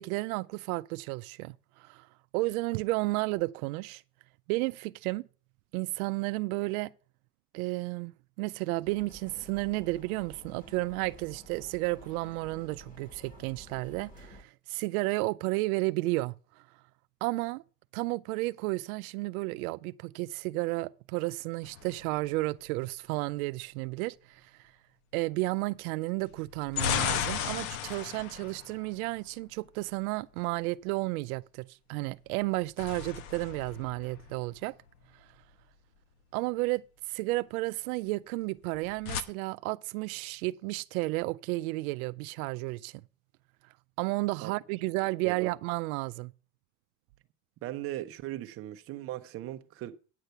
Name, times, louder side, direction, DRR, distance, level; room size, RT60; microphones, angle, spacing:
voice 1, 0.0-2.1 2.3-4.0 4.5-5.3 5.7-6.9 7.5-8.1 8.4-16.7 17.2-17.6 17.9-24.7 25.1-34.8 35.1-35.3 36.3-43.0 44.0-46.3, right 22 dB, 85° right, 0.5 m, -32 dB
sound 1, 8.8-14.4, equal, 20° left, 1.6 m, -52 dB
sound 2, 21.6-22.7 26.3-29.6 32.4-34.9 38.6-39.2, left 9 dB, 75° left, 1.1 m, -35 dB
voice 2, 47.6-50.0, right 14 dB, 30° right, 0.7 m, -38 dB
9.2 x 8.2 x 5.6 m
cardioid pair, 165°, 42 cm